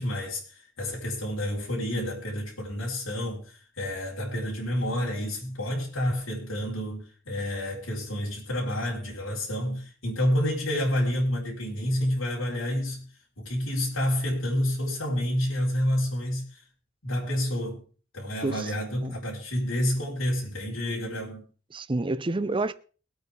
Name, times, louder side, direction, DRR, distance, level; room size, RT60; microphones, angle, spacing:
voice 1, 0.0-13.1 13.4-16.6 17.0-17.8 18.1-21.5, equal, 90° left, 4.0 m, -29 dB
voice 2, 21.7-22.7, right 2 dB, 25° right, 0.6 m, -28 dB
22.5 x 8.2 x 3.4 m
head